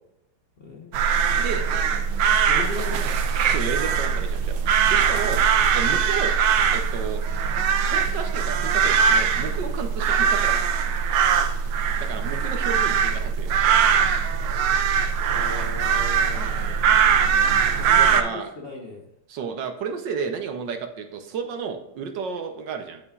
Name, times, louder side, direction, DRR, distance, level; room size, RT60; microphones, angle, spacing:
voice 1, 0.6-1.1 1.5-1.8 2.5-3.3 15.3-19.1, left 3 dB, 40° left, -2 dB, 0.8 m, -38 dB
sound 1, 0.9-18.2, right 7 dB, 85° right, 1.6 m, -21 dB
voice 2, 3.5-4.6 4.9-5.4 5.7-6.3 6.7-7.2 7.8-10.8 12.0-14.0 17.9-18.5 19.3-23.0, right 6 dB, 65° right, 6 dB, 1.3 m, -32 dB
8.9 x 8.5 x 2.4 m, 0.87 s
omnidirectional pair, 2.4 m